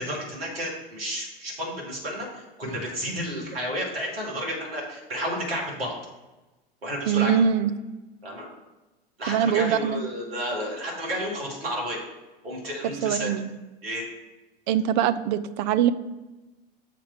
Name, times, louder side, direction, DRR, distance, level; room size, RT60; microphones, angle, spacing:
voice 1, 0.0-5.9 6.8-7.3 8.2-8.4 9.2-12.0 12.4-13.3 13.8-14.0, equal, 80° right, -2 dB, 2.4 m, -31 dB
voice 2, 7.1-7.7 9.3-10.0 13.0-13.5 14.7-15.9, right 9 dB, 50° right, 13 dB, 0.5 m, -23 dB
6.8 x 4.9 x 4.6 m, 1.1 s
figure-of-eight pair, 85°, 29 cm